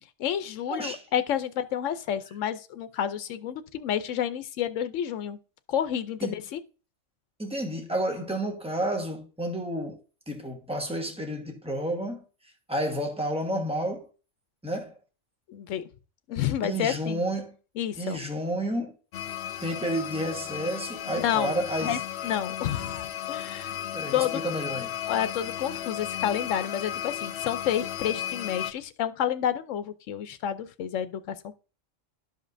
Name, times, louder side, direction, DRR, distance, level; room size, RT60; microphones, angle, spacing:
voice 1, 0.2-5.4 5.7-6.6 15.5-15.9 16.3-17.2 17.8-18.2 21.1-23.7 24.1-24.4 25.1-31.5, left 10 dB, 85° left, 1.0 m, -30 dB
voice 2, 0.7-1.0 6.2-6.3 7.4-10.0 10.3-12.2 12.7-14.1 14.6-14.9 16.6-17.5 18.0-19.0 19.6-22.0 23.9-24.9, right 1 dB, 5° right, 1.2 m, -30 dB
sound 1, 19.1-28.7, left 10 dB, 65° left, 0.8 m, -34 dB
12.0 x 5.2 x 2.6 m
omnidirectional pair, 1.3 m